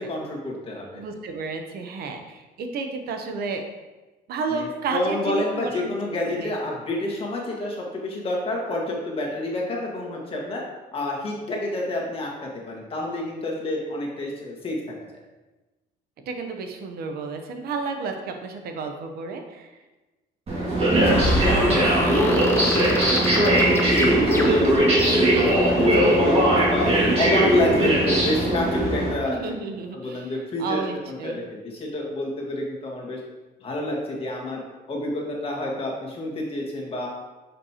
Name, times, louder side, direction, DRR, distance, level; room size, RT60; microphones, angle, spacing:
voice 1, 0.0-1.0 4.5-10.6 10.9-14.8 20.9-23.6 23.8-26.9 27.2-29.4 29.9-30.8 31.1-33.2 33.6-34.6 34.9-37.1, left 1 dB, 35° left, -2 dB, 1.6 m, -29 dB
voice 2, 0.9-3.6 4.3-5.9 6.3-6.6 16.3-19.7 29.3-30.3 30.6-31.4, right 4 dB, 65° right, 5 dB, 0.8 m, -31 dB
sound 1, 20.5-29.1, right 1 dB, 35° right, 2.0 m, -19 dB
sound 2, 21.1-25.6, left 1 dB, 15° left, 0.8 m, -31 dB
6.4 x 5.1 x 2.9 m, 1.1 s
cardioid pair, 110°, 17 cm